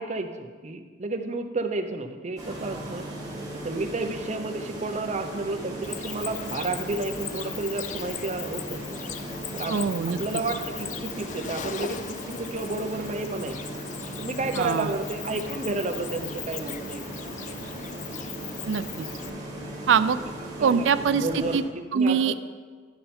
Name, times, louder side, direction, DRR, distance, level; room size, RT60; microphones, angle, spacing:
voice 1, 0.0-3.1 3.6-9.0 9.5-9.9 10.2-13.6 14.2-17.0 20.6-22.3, right 2 dB, 40° right, 6 dB, 0.7 m, -31 dB
sound 1, 2.4-21.6, right 1 dB, 20° right, 1.9 m, -37 dB
Cricket, 5.8-19.3, left 8 dB, 45° left, 0.4 m, -39 dB
voice 2, 9.7-10.2 14.5-14.9 18.7-19.1 19.9-20.2 20.6-21.6 21.9-22.3, right 6 dB, 85° right, 14 dB, 0.4 m, -23 dB
10.5 x 6.8 x 4.3 m, 1.5 s
head